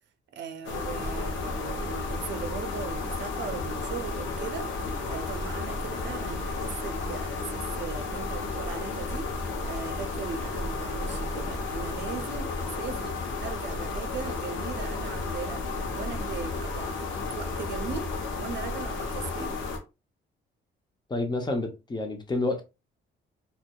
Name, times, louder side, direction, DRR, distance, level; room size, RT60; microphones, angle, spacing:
voice 1, 0.3-4.7 5.1-9.3 9.6-15.6 15.9-19.5, right 6 dB, 65° right, 0.5 m, -38 dB
sound 1, 0.6-19.8, left 3 dB, 75° left, 0.7 m, -32 dB
voice 2, 21.1-22.6, left 2 dB, 20° left, 0.6 m, -29 dB
2.6 x 2.1 x 2.2 m
cardioid pair, 90°, 20 cm